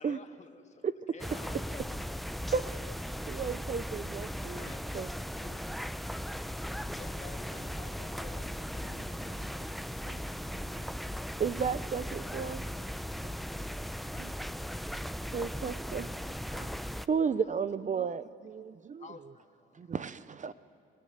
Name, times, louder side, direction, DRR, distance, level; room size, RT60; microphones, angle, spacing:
voice 1, 0.0-2.4 2.7-2.9 4.5-5.7 6.9-9.2 17.4-18.1 19.0-20.2, left 5 dB, 35° left, 6 dB, 1.8 m, -52 dB
sound 1, 1.2-17.1, equal, ahead, 0.7 m, -38 dB
voice 2, 3.3-4.7 4.9-5.1 11.4-12.6 15.3-16.1 16.5-16.7 17.1-19.1 19.8-20.5, right 6 dB, 40° right, 15 dB, 0.7 m, -33 dB
voice 3, 8.8-10.9 14.1-14.4, right 9 dB, 70° right, 9 dB, 1.5 m, -57 dB
26.0 x 19.5 x 9.5 m, 2.2 s
cardioid pair, 90°, 20 cm